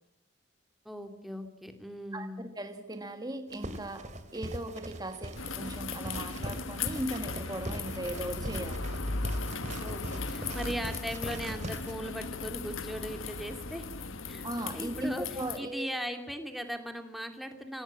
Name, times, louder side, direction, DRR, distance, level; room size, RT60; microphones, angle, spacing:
voice 1, 0.8-2.4 9.8-13.9 14.3-14.5 14.7-15.3 15.6-17.8, equal, ahead, 6 dB, 2.6 m, -38 dB
voice 2, 2.1-8.8 14.4-15.9, right 1 dB, 20° right, 7 dB, 1.6 m, -38 dB
sound 1, 3.5-11.9, right 1 dB, 35° right, 2.5 m, -42 dB
sound 2, 5.4-15.6, left 4 dB, 85° left, 1.5 m, -37 dB
sound 3, 9.5-10.8 11.2-11.6, right 5 dB, 80° right, 0.9 m, -45 dB
26.0 x 17.5 x 8.6 m, 0.88 s
head